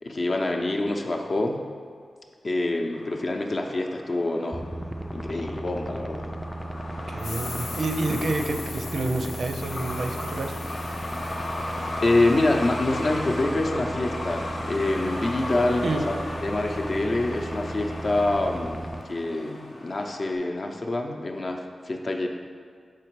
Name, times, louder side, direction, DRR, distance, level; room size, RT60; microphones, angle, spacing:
voice 1, 0.0-1.6 2.4-4.8 5.1-6.3 12.0-16.1 16.4-22.3, left 2 dB, 45° left, 2 dB, 0.6 m, -26 dB
Truck, 2.9-20.4, left 1 dB, 70° left, 0.9 m, -36 dB
sound 1, 4.5-19.0, right 1 dB, ahead, 0.3 m, -36 dB
voice 2, 7.0-10.6 15.8-16.1, right 2 dB, 75° right, 4 dB, 0.5 m, -29 dB
sound 2, 7.2-12.5, left 4 dB, 85° left, 0.4 m, -41 dB
5.9 x 4.8 x 4.7 m, 2.1 s
wide cardioid pair, 95°, 0 cm